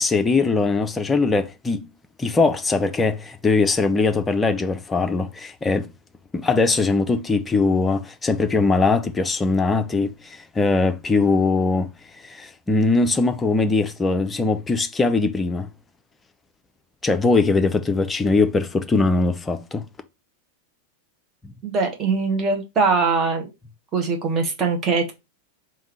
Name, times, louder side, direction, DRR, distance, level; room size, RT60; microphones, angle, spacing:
voice 1, 0.0-1.9 2.2-5.9 6.3-11.9 12.2-15.7 17.0-19.8 21.4-21.5, left 3 dB, 15° left, 0.5 m, -21 dB
voice 2, 21.6-23.5 23.9-25.1, right 4 dB, 25° right, 1.3 m, -22 dB
3.6 x 2.7 x 4.4 m
figure-of-eight pair, 90°, 0 cm